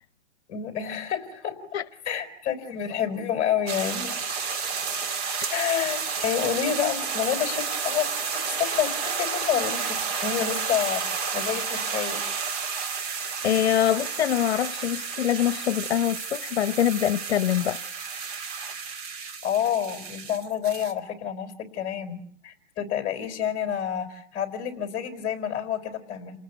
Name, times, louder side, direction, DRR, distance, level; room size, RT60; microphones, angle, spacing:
voice 1, 0.5-1.5 2.0-4.3 5.5-8.1 8.3-12.2 19.4-26.4, left 9 dB, 25° left, 4.7 m, -29 dB
sound 1, 3.7-20.9, right 5 dB, 30° right, 2.7 m, -31 dB
voice 2, 13.4-17.8, left 11 dB, 65° left, 1.1 m, -24 dB
29.5 x 19.5 x 8.1 m
hypercardioid pair, 165°, 35 cm